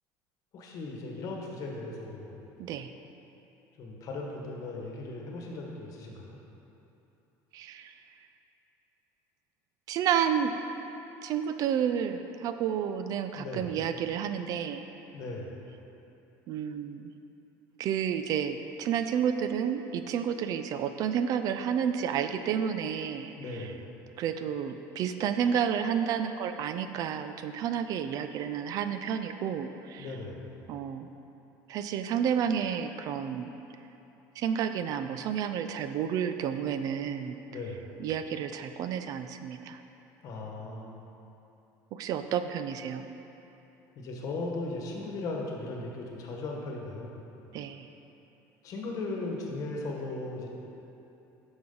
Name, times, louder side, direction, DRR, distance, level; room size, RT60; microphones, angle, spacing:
voice 1, 0.5-2.4 3.8-6.4 13.3-13.7 15.1-15.5 23.4-23.8 30.0-30.5 37.5-37.9 40.2-41.0 44.0-47.2 48.6-50.5, left 2 dB, 45° left, -1 dB, 1.2 m, -37 dB
voice 2, 2.6-2.9 7.5-8.3 9.9-10.6 11.2-14.9 16.5-17.1 17.8-23.8 24.2-30.2 30.7-31.1 31.7-33.5 34.3-37.4 38.0-39.8 41.9-43.1 47.5-47.9, right 8 dB, 50° right, 9 dB, 0.4 m, -31 dB
9.4 x 6.1 x 3.8 m, 3.0 s
cardioid pair, 150°, 8 cm